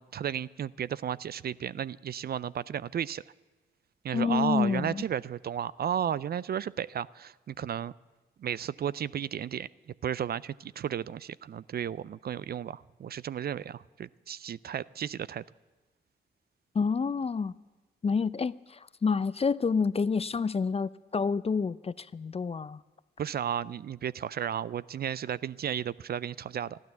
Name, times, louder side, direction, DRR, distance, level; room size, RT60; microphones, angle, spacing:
voice 1, 0.0-3.2 4.0-7.9 8.4-9.7 10.0-15.4 23.2-26.8, right 9 dB, 50° right, 19 dB, 0.4 m, -33 dB
voice 2, 4.1-5.0 16.7-17.5 18.0-22.8, left 5 dB, 30° left, 18 dB, 0.4 m, -28 dB
13.5 x 12.0 x 7.0 m, 1.2 s
supercardioid pair, 45°, 20 cm